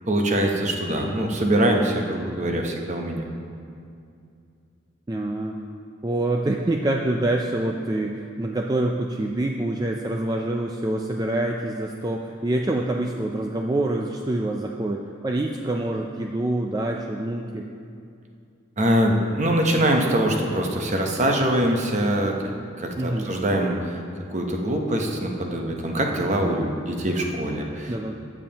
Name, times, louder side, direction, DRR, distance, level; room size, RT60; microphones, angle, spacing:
voice 1, 0.0-3.2 18.8-22.3 22.8-24.0 24.3-27.9, right 1 dB, 35° right, 2 dB, 0.8 m, -23 dB
voice 2, 5.1-5.5 6.0-17.7 23.0-23.3 27.9-28.1, right 1 dB, 20° right, 1 dB, 0.3 m, -26 dB
14.0 x 7.2 x 2.9 m, 2.4 s
head